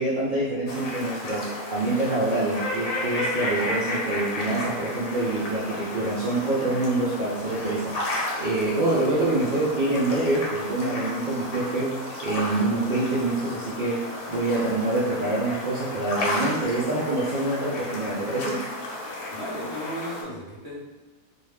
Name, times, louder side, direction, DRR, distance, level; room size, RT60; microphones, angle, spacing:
voice 1, 0.0-12.0 12.2-14.0 14.3-18.6, right 2 dB, 70° right, -7 dB, 0.4 m, -26 dB
sound 1, 0.7-20.2, left 1 dB, 80° left, 1.1 m, -33 dB
voice 2, 9.1-10.2 19.3-20.8, equal, 40° left, -9 dB, 0.4 m, -36 dB
2.5 x 2.3 x 3.2 m, 1.2 s
omnidirectional pair, 1.5 m